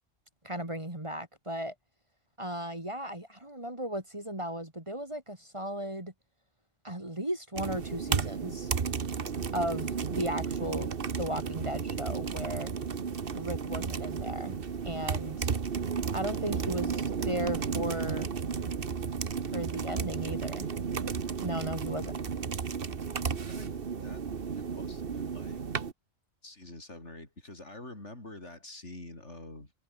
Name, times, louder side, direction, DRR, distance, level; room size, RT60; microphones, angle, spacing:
voice 1, 0.4-1.7 2.4-6.1 6.8-8.7 9.5-12.7 13.3-14.6 14.8-15.5 16.1-18.3 19.5-20.7 21.4-22.2, right 1 dB, 20° right, 3.3 m, -36 dB
sound 1, 7.6-25.9, right 6 dB, 45° right, 1.4 m, -33 dB
voice 2, 23.1-23.8 24.0-24.3 24.6-25.6 26.4-29.7, left 2 dB, 60° left, 5.5 m, -47 dB
omnidirectional pair, 1.3 m